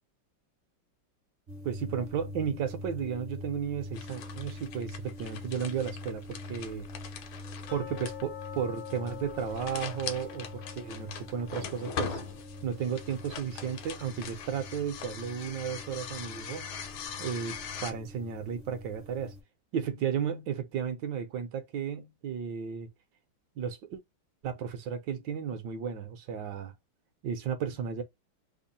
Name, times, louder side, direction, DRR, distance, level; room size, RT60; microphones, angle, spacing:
sound 1, 1.5-19.4, left 1 dB, 50° right, 0.6 m, -45 dB
voice 1, 1.6-6.9 7.7-12.2 12.6-16.7 17.2-19.3 19.7-22.9 23.6-24.0 24.4-26.7 27.2-28.0, right 7 dB, 70° right, 1.1 m, -34 dB
sound 2, 3.9-17.9, left 7 dB, 75° left, 1.4 m, -42 dB
sound 3, 7.7-14.5 14.8-14.9 15.4-15.5 16.1-16.2, left 13 dB, 90° left, 1.5 m, -47 dB
3.5 x 2.1 x 3.8 m
omnidirectional pair, 2.4 m